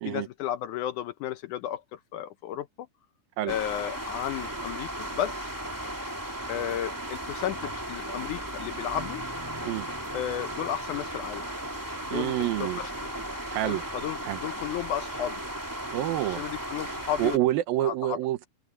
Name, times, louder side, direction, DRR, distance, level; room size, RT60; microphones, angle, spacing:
voice 1, 0.1-2.9 3.5-5.5 6.5-9.3 10.1-11.5 12.0-13.1 13.6-15.4 16.2-17.4 17.8-18.2, left 11 dB, 75° left, 1.9 m, -33 dB
sound 1, 3.5-17.4, right 1 dB, 5° right, 2.2 m, -36 dB
voice 2, 12.1-12.8 13.5-13.8 14.2-14.4 15.9-16.5 17.2-18.5, right 14 dB, 85° right, 2.8 m, -27 dB
open air
omnidirectional pair, 4.1 m